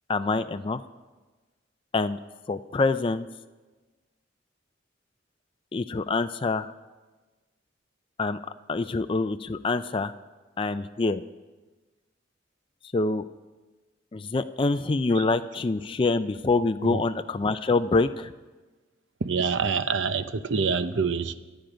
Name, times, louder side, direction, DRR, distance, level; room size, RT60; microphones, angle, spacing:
voice 1, 0.1-0.8 1.9-2.2 2.5-3.3 5.7-6.7 8.2-8.4 8.7-10.1 10.6-11.2 12.9-13.2 14.1-18.3, left 3 dB, 25° left, 10 dB, 0.4 m, -25 dB
voice 2, 19.2-21.3, right 5 dB, 70° right, 11 dB, 0.7 m, -26 dB
25.0 x 9.2 x 5.1 m, 1.3 s
head